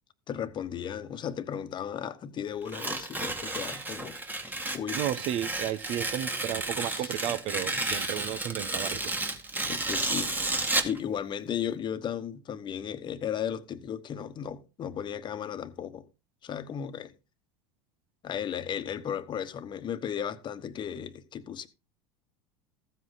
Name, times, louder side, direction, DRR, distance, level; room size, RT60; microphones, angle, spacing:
voice 1, 0.3-4.2 4.7-5.0 6.8-7.2 7.7-8.3 9.7-10.5 10.8-16.1 16.4-17.1 18.2-21.7, left 8 dB, 35° left, 1.2 m, -35 dB
Tearing, 2.7-11.0, right 2 dB, 15° right, 2.0 m, -32 dB
voice 2, 4.9-9.1, right 12 dB, 50° right, 0.9 m, -33 dB
15.0 x 7.9 x 4.0 m
hypercardioid pair, 80°, 13 cm